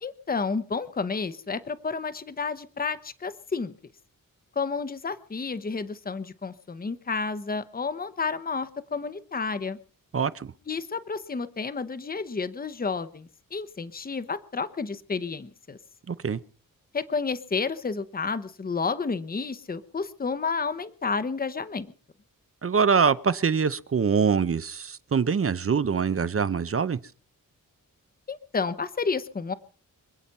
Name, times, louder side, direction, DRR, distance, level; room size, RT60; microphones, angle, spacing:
voice 1, 0.0-3.7 4.6-9.8 10.7-15.8 16.9-21.9 28.3-29.5, left 4 dB, 25° left, 0.9 m, -31 dB
voice 2, 10.1-10.5 16.1-16.4 22.6-27.0, right 6 dB, 40° right, 0.7 m, -24 dB
26.5 x 9.0 x 5.5 m
wide cardioid pair, 180°, 34 cm